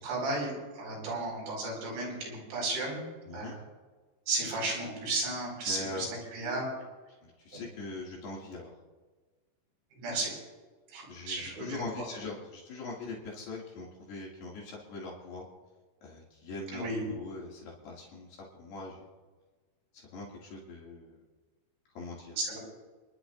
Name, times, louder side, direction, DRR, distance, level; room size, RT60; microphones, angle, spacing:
voice 1, 0.0-3.0 3.3-3.6 4.3-6.1 6.3-6.7 7.5-7.6 9.9-10.3 10.9-11.8 16.7-17.0 22.5-22.6, right 2 dB, 90° right, -3 dB, 7.5 m, -34 dB
voice 2, 5.7-6.1 7.2-8.7 11.1-15.5 16.0-18.3 18.5-19.1 19.9-21.2 22.0-22.4, left 3 dB, 65° left, -4 dB, 4.2 m, -42 dB
29.5 x 12.0 x 2.6 m, 1.3 s
omnidirectional pair, 5.1 m